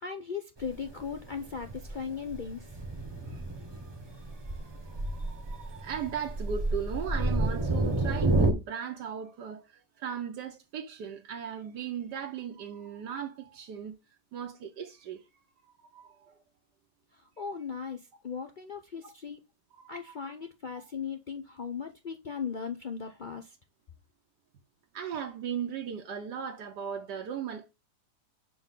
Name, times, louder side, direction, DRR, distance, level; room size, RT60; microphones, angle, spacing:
voice 1, 0.0-2.8 17.1-19.4 19.9-23.6, left 6 dB, 70° left, 0.4 m, -38 dB
Thunder, 0.6-8.5, right 2 dB, 20° right, 0.9 m, -30 dB
voice 2, 3.7-14.0 14.3-15.3 15.8-16.4 19.7-20.1 20.7-20.8 24.9-27.7, right 8 dB, 85° right, 1.5 m, -38 dB
6.3 x 4.6 x 3.7 m
omnidirectional pair, 1.8 m